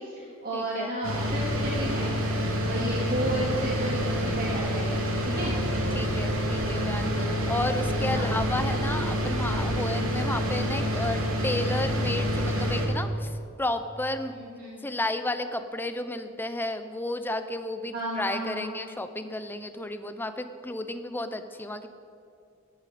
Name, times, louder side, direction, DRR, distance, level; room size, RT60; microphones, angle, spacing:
voice 1, 0.0-2.1 2.6-5.6 8.1-8.4 14.3-14.8 17.9-18.7, right 1 dB, 45° right, -5 dB, 2.2 m, -33 dB
voice 2, 0.5-0.9 5.2-5.5 5.9-14.3 14.8-21.9, left 1 dB, 10° left, 9 dB, 0.7 m, -32 dB
sound 1, 1.0-12.9, equal, 75° right, 2.8 m, -27 dB
sound 2, 5.1-10.1, equal, 90° left, 3.2 m, -39 dB
17.5 x 13.0 x 4.2 m, 2.5 s
head